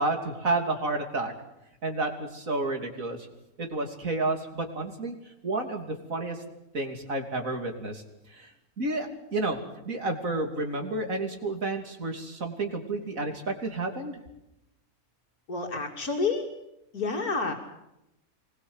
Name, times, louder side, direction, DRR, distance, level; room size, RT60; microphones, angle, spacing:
voice 1, 0.0-1.3 1.8-3.2 3.6-5.2 5.4-6.4 6.7-8.0 8.3-8.5 8.8-9.6 9.9-14.2, right 2 dB, 65° right, 4 dB, 3.4 m, -30 dB
voice 2, 15.5-16.5 16.9-17.5, left 4 dB, 80° left, 2 dB, 3.3 m, -29 dB
24.0 x 20.5 x 8.1 m, 0.87 s
omnidirectional pair, 1.5 m